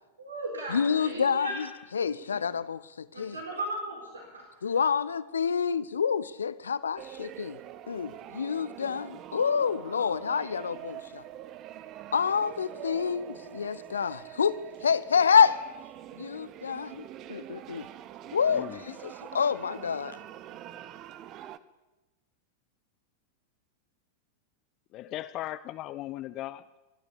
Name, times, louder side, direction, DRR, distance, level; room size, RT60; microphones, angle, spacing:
voice 1, 0.2-1.6 2.1-2.2 3.1-4.8, right 1 dB, 75° right, 1 dB, 4.1 m, -37 dB
voice 2, 0.7-1.7 1.9-3.4 4.6-7.6 7.9-11.2 12.1-15.6 16.2-17.9 18.3-20.2, left 6 dB, 70° left, 17 dB, 0.9 m, -28 dB
sound 1, 7.0-21.6, right 12 dB, 35° right, 1.1 m, -45 dB
voice 3, 18.2-18.8 24.9-26.8, left 15 dB, 35° left, 14 dB, 0.6 m, -38 dB
27.5 x 12.0 x 8.6 m, 1.1 s
figure-of-eight pair, 90°, 0 cm